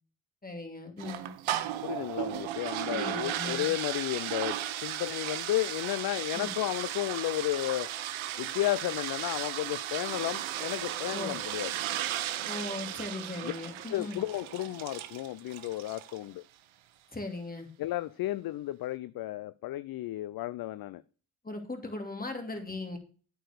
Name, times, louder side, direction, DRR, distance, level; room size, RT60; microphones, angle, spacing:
voice 1, 0.4-1.3 2.8-3.7 6.3-6.5 11.1-11.4 12.4-14.2 17.1-17.7 21.4-23.0, left 2 dB, 15° left, 2.6 m, -38 dB
sound 1, 1.0-16.2, right 12 dB, 70° right, 1.0 m, -35 dB
voice 2, 1.8-7.9 8.4-11.7 13.4-13.5 13.9-16.4 17.8-21.0, left 15 dB, 50° left, 0.5 m, -33 dB
8.8 x 4.7 x 6.6 m
supercardioid pair, 65°, 49 cm